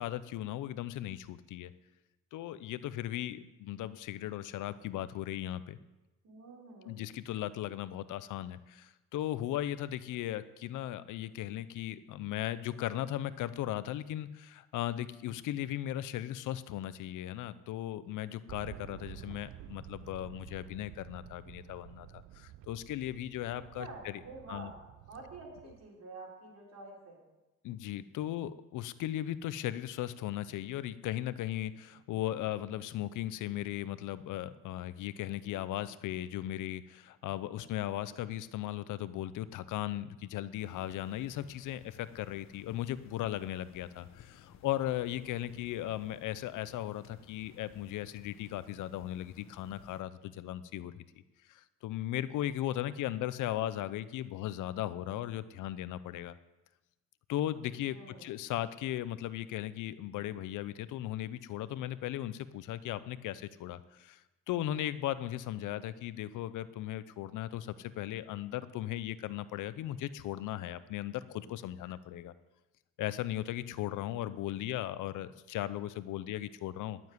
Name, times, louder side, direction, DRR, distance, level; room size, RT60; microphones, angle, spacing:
voice 1, 0.0-1.7 2.3-5.8 6.8-22.1 22.3-24.2 24.5-24.7 27.6-50.9 51.5-56.3 57.3-64.2 64.5-72.3 73.0-77.0, left 13 dB, 85° left, 15 dB, 0.7 m, -37 dB
voice 2, 6.2-7.0 23.5-24.8 25.0-27.2 57.8-58.3, right 3 dB, 60° right, -2 dB, 4.8 m, -48 dB
sound 1, 18.5-25.9, right 13 dB, 75° right, 0.6 m, -51 dB
sound 2, 40.6-50.0, left 9 dB, 60° left, 1.0 m, -58 dB
12.0 x 7.3 x 9.6 m, 1.0 s
cardioid pair, 90°, 30 cm